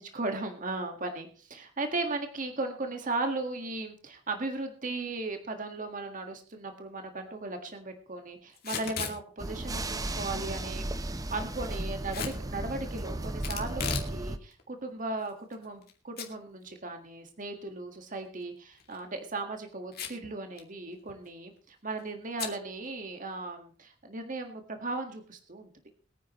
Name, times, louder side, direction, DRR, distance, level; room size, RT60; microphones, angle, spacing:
voice 1, 0.0-25.7, right 2 dB, 45° right, 5 dB, 1.8 m, -37 dB
Packing tape duct tape / Tearing, 8.6-9.2 12.1-12.4 13.4-14.1 14.5-14.6 15.3-15.9 16.2-16.3 16.7-16.8 18.7-19.0 19.9-20.3 20.6-20.7 20.9-21.3 22.4-22.6, left 6 dB, 55° left, 2.4 m, -35 dB
sound 1, 9.4-14.4, right 1 dB, 20° right, 0.7 m, -35 dB
22.5 x 9.5 x 3.1 m, 0.39 s
head